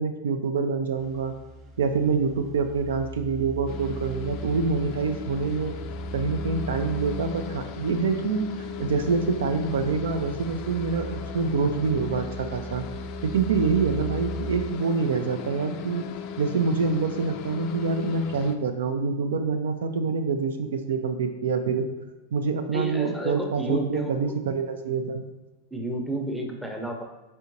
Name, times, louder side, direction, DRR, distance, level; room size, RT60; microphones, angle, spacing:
voice 1, 0.0-1.3 1.8-5.8 6.1-8.5 8.8-12.8 13.2-16.1 16.4-21.9 22.3-25.2, right 5 dB, 60° right, 7 dB, 0.3 m, -26 dB
sound 1, 0.9-14.7, right 1 dB, 35° right, 0.8 m, -39 dB
sound 2, 3.7-18.6, left 7 dB, 40° left, 0.3 m, -38 dB
voice 2, 22.7-24.4 25.7-27.0, right 1 dB, ahead, 1 dB, 0.7 m, -31 dB
4.4 x 4.3 x 2.7 m, 1.1 s
figure-of-eight pair, 90°, 0 cm